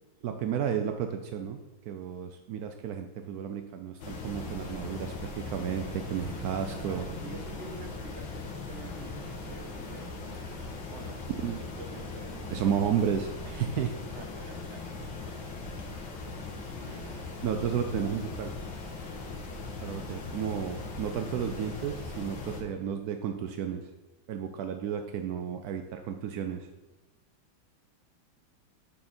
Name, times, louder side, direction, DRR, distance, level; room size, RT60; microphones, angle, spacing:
voice 1, 0.2-1.6 1.9-7.4 11.4-11.6 12.5-14.0 16.8-18.5 19.8-23.8 24.3-26.7, right 8 dB, 75° right, 6 dB, 0.9 m, -32 dB
sound 1, 4.0-22.6, left 3 dB, 70° left, 2.1 m, -39 dB
voice 2, 6.9-10.2 10.9-12.7 14.1-15.4 16.2-16.4, right 2 dB, 40° right, 2 dB, 1.5 m, -47 dB
9.5 x 6.6 x 4.3 m, 1.1 s
omnidirectional pair, 2.2 m